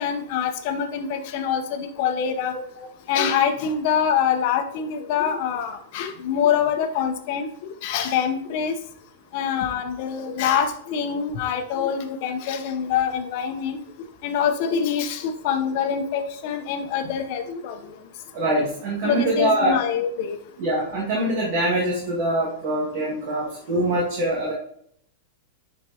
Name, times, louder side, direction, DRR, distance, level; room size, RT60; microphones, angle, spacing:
voice 1, 0.0-2.6 3.1-8.8 9.3-13.8 14.2-17.8 19.0-20.4, left 8 dB, 50° left, 7 dB, 0.9 m, -25 dB
voice 2, 18.3-19.8 20.6-24.5, right 1 dB, 50° right, -4 dB, 2.0 m, -24 dB
9.8 x 4.5 x 2.9 m, 0.67 s
supercardioid pair, 140°, 0 cm